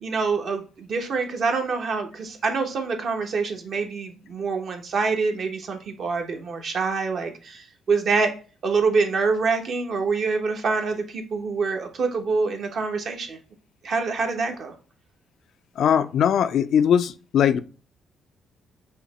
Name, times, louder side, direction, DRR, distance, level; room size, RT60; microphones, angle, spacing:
voice 1, 0.0-8.3 8.6-13.4 13.8-14.7, right 4 dB, 60° right, 1.0 m, -25 dB
voice 2, 15.8-17.6, left 8 dB, 70° left, 0.3 m, -20 dB
5.5 x 2.2 x 4.1 m
cardioid pair, 90°, 0 cm